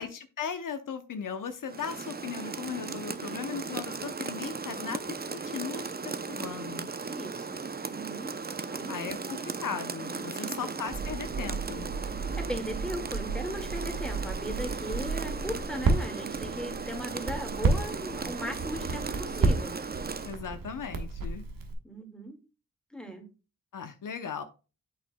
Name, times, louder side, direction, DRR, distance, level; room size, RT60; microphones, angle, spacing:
voice 1, 0.0-5.0 5.3-6.9 8.9-11.9 20.2-21.4 23.7-24.4, left 7 dB, 70° left, 9 dB, 0.7 m, -37 dB
Rain, 1.7-20.4, right 4 dB, 30° right, 0.6 m, -37 dB
voice 2, 7.1-8.3 8.7-9.0 10.3-10.5 12.1-19.8 21.8-22.4 22.9-23.3, equal, ahead, 4 dB, 1.9 m, -38 dB
Crackle, 10.9-21.7, right 3 dB, 90° right, 1.4 m, -32 dB
8.3 x 6.2 x 2.2 m, 0.32 s
cardioid pair, 70°, 33 cm